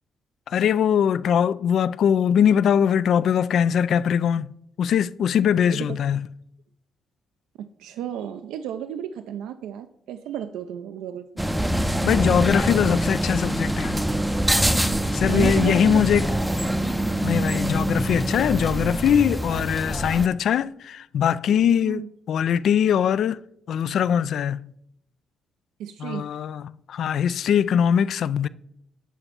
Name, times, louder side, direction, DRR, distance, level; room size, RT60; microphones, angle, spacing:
voice 1, 0.5-4.5 4.8-6.3 12.0-14.0 15.1-16.3 17.2-23.4 23.7-24.7 26.0-28.5, left 8 dB, 65° left, 0.3 m, -21 dB
voice 2, 5.7-6.0 7.6-11.4 15.3-16.0 16.3-16.4 21.8-22.1 25.8-26.3, right 10 dB, 85° right, 0.4 m, -33 dB
sound 1, 11.4-20.3, right 1 dB, 5° right, 0.5 m, -24 dB
9.2 x 4.3 x 7.0 m
cardioid pair, 90°, 0 cm